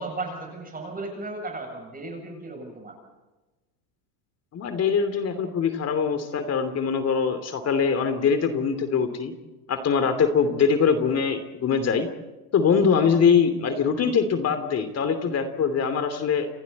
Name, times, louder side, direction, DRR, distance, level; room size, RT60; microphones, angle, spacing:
voice 1, 0.0-2.9, right 2 dB, 20° right, 2 dB, 7.6 m, -35 dB
voice 2, 4.5-9.3 9.7-12.1 12.5-16.5, left 6 dB, 35° left, 9 dB, 3.0 m, -23 dB
30.0 x 24.0 x 4.2 m, 1.1 s
supercardioid pair, 115°, 45 cm